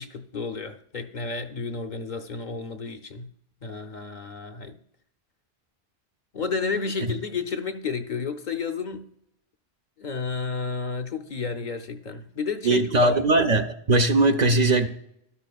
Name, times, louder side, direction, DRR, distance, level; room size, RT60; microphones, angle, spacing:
voice 1, 0.0-3.3 3.6-4.8 6.3-9.1 10.0-13.1, left 4 dB, 50° left, 0.7 m, -31 dB
voice 2, 12.6-14.9, right 2 dB, 50° right, 0.6 m, -20 dB
12.5 x 12.0 x 2.3 m
omnidirectional pair, 1.1 m